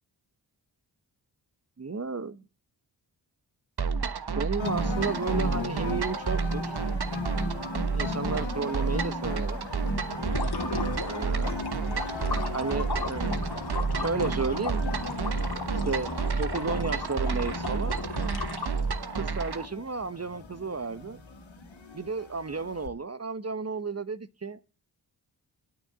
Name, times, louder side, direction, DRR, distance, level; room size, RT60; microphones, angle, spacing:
voice 1, 1.8-2.4 4.3-6.8 7.9-9.7 10.8-11.5 12.5-13.4 14.0-14.8 15.7-17.9 19.2-21.2 21.9-24.6, right 4 dB, 35° right, 1.0 m, -33 dB
sound 1, 3.8-19.7, right 5 dB, 55° right, 1.2 m, -31 dB
sound 2, 4.5-22.9, left 2 dB, 80° left, 3.5 m, -37 dB
sound 3, 10.1-19.1, left 4 dB, 55° left, 2.3 m, -36 dB
9.3 x 6.3 x 8.1 m
cardioid pair, 40°, 46 cm